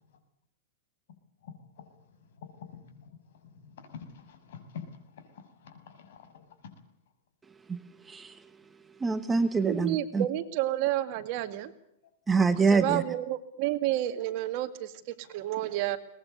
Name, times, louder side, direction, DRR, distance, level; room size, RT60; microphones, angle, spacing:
voice 1, 1.4-1.9 2.4-3.1 3.4-6.4, left 6 dB, 70° left, 6.8 m, -47 dB
voice 2, 8.1-8.4 9.0-10.2 12.3-13.0, right 4 dB, 10° right, 1.1 m, -25 dB
voice 3, 9.6-11.7 12.7-14.9 15.2-16.0, right 14 dB, 45° right, 2.1 m, -30 dB
23.0 x 20.0 x 8.1 m
supercardioid pair, 160°, 0 cm